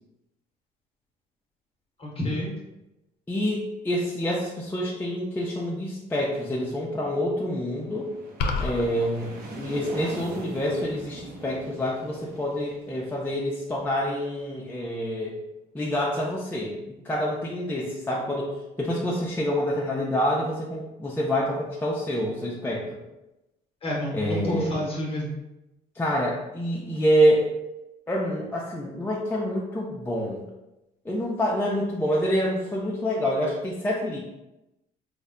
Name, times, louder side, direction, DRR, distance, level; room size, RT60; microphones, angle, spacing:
voice 1, 2.0-2.5 23.8-25.3, equal, 35° left, -2 dB, 0.9 m, -29 dB
voice 2, 3.3-8.1 8.6-15.3 15.7-18.5 18.8-23.0 24.1-24.7 25.9-27.5 28.1-30.4 31.1-34.2, equal, 10° left, -4 dB, 0.5 m, -27 dB
sound 1, 7.5-14.2, right 2 dB, 60° right, 0.7 m, -42 dB
sound 2, 8.4-8.9, left 3 dB, 70° left, 0.5 m, -26 dB
3.2 x 2.1 x 3.6 m, 0.96 s
cardioid pair, 110°, 17 cm